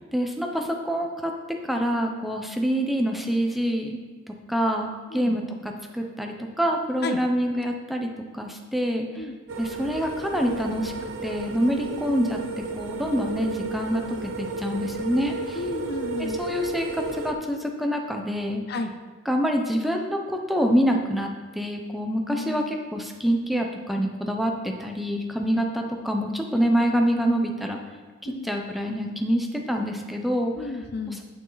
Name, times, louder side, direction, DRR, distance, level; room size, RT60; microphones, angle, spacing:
voice 1, 0.1-4.0 4.5-9.2 9.6-10.9 11.2-12.4 12.7-15.6 16.2-18.6 19.3-27.8 28.2-30.5 31.1-31.2, equal, ahead, 2 dB, 0.7 m, -26 dB
sound 1, 9.5-17.3, right 3 dB, 80° right, 0.7 m, -33 dB
voice 2, 15.5-16.4 18.7-18.9 22.3-22.8 28.3-28.5 30.6-31.2, left 3 dB, 55° left, 8 dB, 0.5 m, -32 dB
9.1 x 6.2 x 4.0 m, 1.5 s
head